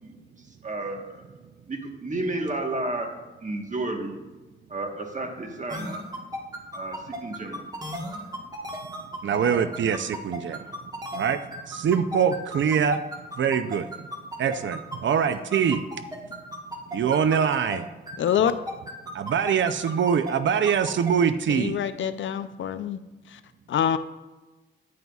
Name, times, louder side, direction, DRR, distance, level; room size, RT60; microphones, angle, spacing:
voice 1, 0.6-1.3 1.7-3.1 3.4-4.2 4.7-6.0 6.7-7.6, right 2 dB, 40° right, 3 dB, 1.2 m, -31 dB
sound 1, 5.7-17.8 18.1-21.1, equal, 20° right, 1.3 m, -35 dB
voice 2, 9.2-10.7 11.1-11.4 11.7-13.0 13.4-13.9 14.4-16.1 16.9-17.9 19.1-21.8, right 7 dB, 75° right, 11 dB, 0.4 m, -24 dB
voice 3, 18.2-18.5 21.5-23.0 23.3-23.4 23.7-24.0, left 9 dB, 80° left, 12 dB, 0.4 m, -25 dB
9.4 x 9.3 x 2.3 m, 1.2 s
wide cardioid pair, 85°, 19 cm